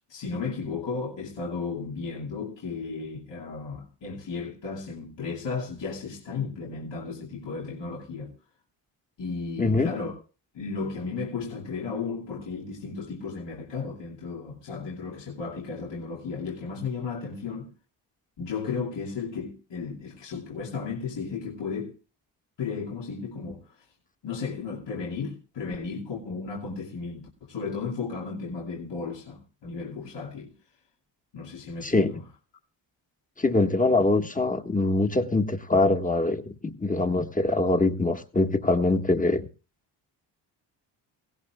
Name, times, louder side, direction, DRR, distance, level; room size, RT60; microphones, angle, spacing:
voice 1, 0.0-8.3 9.2-10.2 10.5-17.7 18.4-21.9 22.6-23.9 24.2-30.5 31.3-32.2, left 5 dB, 60° left, 2.7 m, -34 dB
voice 2, 9.6-9.9 31.8-32.1 33.4-39.5, left 2 dB, 15° left, 1.6 m, -23 dB
18.0 x 16.5 x 2.3 m
cardioid pair, 65°, 48 cm